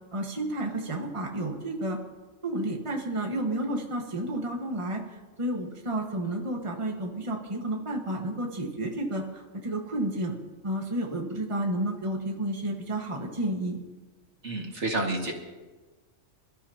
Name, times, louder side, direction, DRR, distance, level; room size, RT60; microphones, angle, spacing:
voice 1, 0.1-2.0 2.4-10.3 10.6-13.8, right 1 dB, 25° right, 0 dB, 1.5 m, -31 dB
voice 2, 14.4-15.3, right 2 dB, 60° right, 0 dB, 2.3 m, -29 dB
27.0 x 13.5 x 2.9 m, 1.2 s
omnidirectional pair, 1.3 m